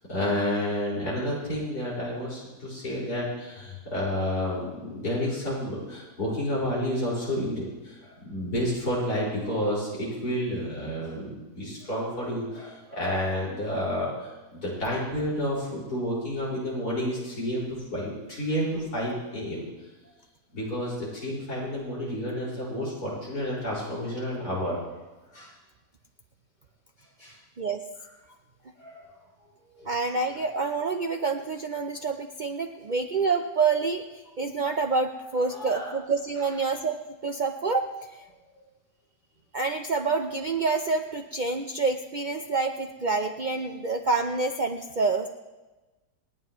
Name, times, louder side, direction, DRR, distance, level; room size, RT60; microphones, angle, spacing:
voice 1, 0.1-19.7 20.5-25.0 25.3-25.5 27.2-27.4 28.8-29.1 29.7-29.9 35.5-36.0, equal, 75° left, -6 dB, 5.6 m, -30 dB
voice 2, 29.9-34.0 34.4-37.9 39.5-45.3, right 4 dB, 85° right, 4 dB, 0.4 m, -27 dB
28.0 x 9.3 x 3.0 m, 1.2 s
omnidirectional pair, 1.7 m